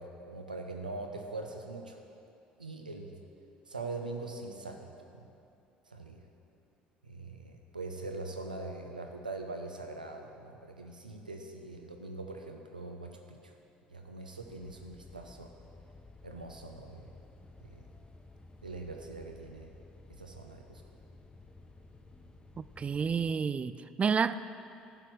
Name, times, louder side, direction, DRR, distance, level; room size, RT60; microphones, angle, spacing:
voice 1, 0.0-2.0 2.6-3.2 3.7-5.3 5.9-6.2 7.0-13.5 13.9-15.5 16.2-17.1 17.6-17.9 18.6-19.7 20.1-20.8, right 2 dB, 85° right, 3 dB, 0.8 m, -42 dB
sound 1, 14.4-23.4, left 2 dB, 20° left, 0.9 m, -54 dB
voice 2, 22.6-24.4, right 6 dB, 30° right, 14 dB, 0.4 m, -30 dB
11.5 x 5.8 x 8.0 m, 2.6 s
figure-of-eight pair, 55°, 4 cm